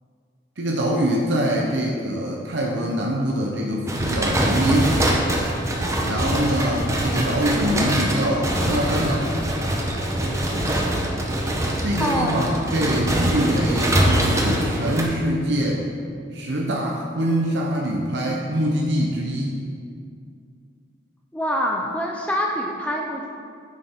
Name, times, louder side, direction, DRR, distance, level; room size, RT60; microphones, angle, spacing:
voice 1, 0.6-5.3 6.1-9.3 11.8-15.8 16.3-19.6, right 1 dB, 65° right, -1 dB, 0.8 m, -24 dB
sound 1, 3.9-15.0, right 1 dB, 15° right, 0.8 m, -23 dB
voice 2, 12.0-12.4 21.3-23.3, equal, 5° left, -1 dB, 0.5 m, -25 dB
9.1 x 6.6 x 3.6 m, 2.3 s
head